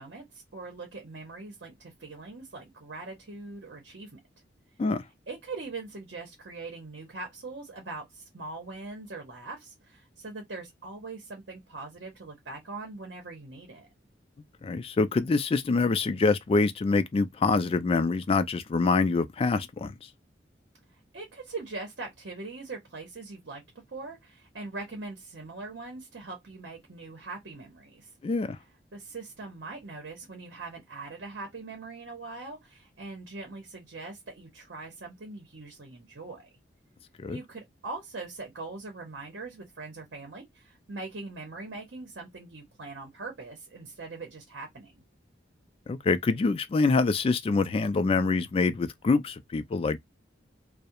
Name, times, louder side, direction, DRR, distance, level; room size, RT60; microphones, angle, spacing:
voice 1, 0.0-4.2 5.3-13.9 21.1-23.6 23.9-28.1 28.9-36.5 37.3-45.0, right 3 dB, 65° right, 0.8 m, -41 dB
voice 2, 14.6-19.9 28.2-28.6 37.2-37.4 45.9-50.0, left 3 dB, 30° left, 0.3 m, -25 dB
2.3 x 2.1 x 2.7 m
head